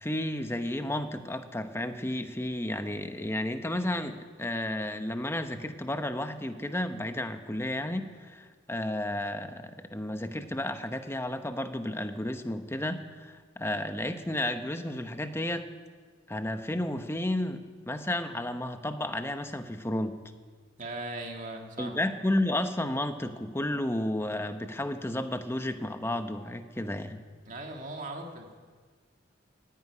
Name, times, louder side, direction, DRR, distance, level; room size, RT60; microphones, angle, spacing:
voice 1, 0.0-15.7 16.3-20.2 21.8-27.2, left 1 dB, 15° left, 8 dB, 0.9 m, -32 dB
voice 2, 20.8-21.9 27.5-28.5, right 2 dB, 40° right, 2 dB, 2.1 m, -39 dB
15.0 x 9.8 x 9.6 m, 1.5 s
head